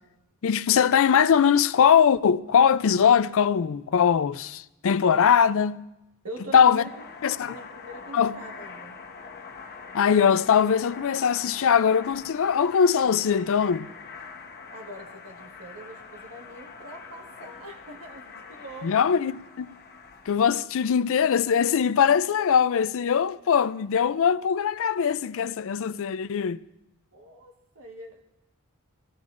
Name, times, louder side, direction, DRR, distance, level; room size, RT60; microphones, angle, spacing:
voice 1, 0.4-5.8 6.5-6.8 7.2-7.5 8.1-8.3 9.9-13.9 18.8-19.7 20.3-26.6, left 7 dB, 60° left, 0.4 m, -21 dB
voice 2, 6.2-7.0 7.4-9.0 14.7-19.2 27.1-28.2, right 1 dB, 70° right, 1.5 m, -43 dB
sound 1, 6.6-20.3, left 5 dB, 45° left, 1.0 m, -44 dB
23.0 x 17.5 x 2.5 m
head